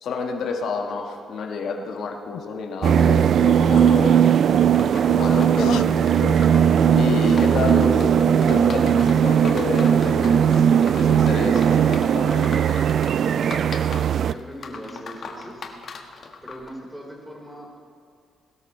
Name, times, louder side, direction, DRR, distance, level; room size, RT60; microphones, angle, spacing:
voice 1, 0.0-4.2 5.0-6.3 6.9-8.1 8.4-10.7 10.9-12.7, left 4 dB, 70° left, 2 dB, 1.6 m, -29 dB
sound 1, 1.9-2.0 2.3-2.4 4.3-7.5 7.8-7.9, left 12 dB, 85° left, 0.3 m, -37 dB
sound 2, 2.8-14.3, right 8 dB, 60° right, 0.3 m, -18 dB
sound 3, 3.8-16.7, left 5 dB, 55° left, 1.5 m, -40 dB
voice 2, 14.1-15.7 16.4-17.8, equal, 5° right, -2 dB, 4.4 m, -40 dB
21.0 x 12.5 x 3.3 m, 2.4 s
cardioid pair, 90°, 0 cm